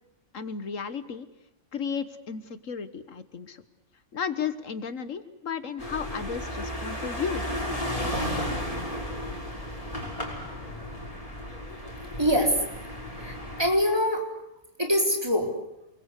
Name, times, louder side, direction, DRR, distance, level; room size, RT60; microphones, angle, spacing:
voice 1, 0.3-1.3 1.7-3.6 4.1-7.4, left 6 dB, 75° left, 12 dB, 1.6 m, -34 dB
sound 1, 5.8-13.6, equal, 25° left, 6.3 m, -33 dB
voice 2, 12.2-12.8 13.1-14.3 14.8-15.5, equal, 20° right, 2 dB, 4.3 m, -24 dB
29.0 x 22.0 x 8.3 m, 0.84 s
omnidirectional pair, 1.4 m